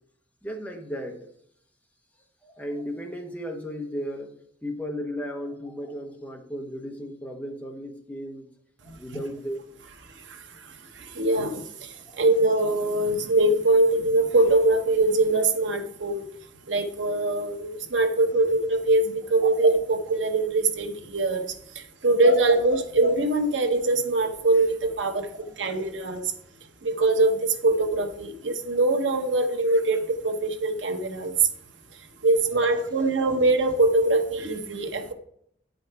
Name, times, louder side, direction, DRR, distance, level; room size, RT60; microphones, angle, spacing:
voice 1, 0.4-1.3 2.4-4.3 4.6-8.5 8.8-9.6 12.1-12.2 25.4-25.7, equal, 10° left, 2 dB, 1.0 m, -35 dB
voice 2, 11.1-11.9 12.2-16.3 16.7-21.5 22.0-25.3 25.6-26.2 26.8-31.3 32.2-35.1, right 2 dB, 85° right, 5 dB, 1.0 m, -22 dB
8.9 x 5.2 x 4.6 m, 0.69 s
head